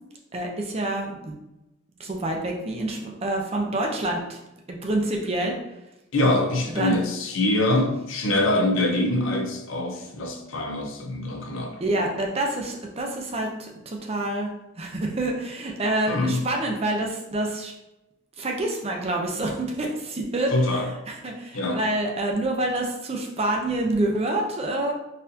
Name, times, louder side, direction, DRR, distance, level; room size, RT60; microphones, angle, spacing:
voice 1, 0.3-1.3 2.0-4.4 4.7-5.6 6.7-7.0 11.8-14.5 14.8-17.7 18.4-24.9, right 1 dB, 30° right, 1 dB, 0.5 m, -27 dB
voice 2, 6.1-11.8 16.1-16.4 20.5-20.9 21.5-21.8, left 1 dB, 75° left, 3 dB, 0.6 m, -24 dB
4.0 x 2.7 x 2.7 m, 0.92 s
head